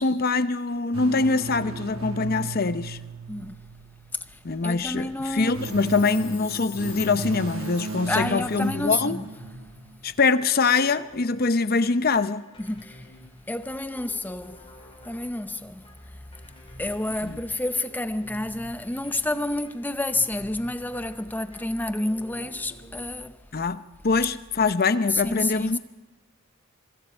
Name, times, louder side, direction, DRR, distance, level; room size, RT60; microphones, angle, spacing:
voice 1, 0.0-3.0 4.4-9.2 10.0-12.4 17.2-17.4 23.5-25.8, left 4 dB, 45° left, 0.7 m, -24 dB
sound 1, 0.9-4.3 5.2-10.0, right 3 dB, 80° right, 1.2 m, -36 dB
sound 2, 4.4-23.1, left 1 dB, 25° left, 3.8 m, -50 dB
voice 2, 4.6-5.7 8.1-9.3 12.6-13.0 13.5-14.7 15.0-15.8 16.8-23.4 25.2-25.8, left 2 dB, 10° left, 0.6 m, -29 dB
Chime, 5.4-9.0 9.3-9.4, left 13 dB, 60° left, 2.0 m, -43 dB
25.0 x 24.0 x 4.4 m
head